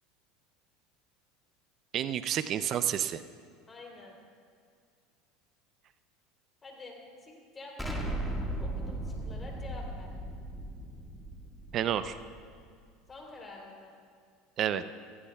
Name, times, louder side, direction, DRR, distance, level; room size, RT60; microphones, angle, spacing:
voice 1, 1.9-3.2 11.7-12.1 14.6-14.9, right 10 dB, 45° right, 12 dB, 0.6 m, -29 dB
voice 2, 3.7-4.2 6.6-8.0 8.6-10.1 13.1-14.0, left 3 dB, 25° left, -1 dB, 3.5 m, -48 dB
Explosion, 7.8-12.6, right 1 dB, ahead, 1.8 m, -37 dB
18.5 x 15.0 x 2.4 m, 2.2 s
supercardioid pair, 95°, 0 cm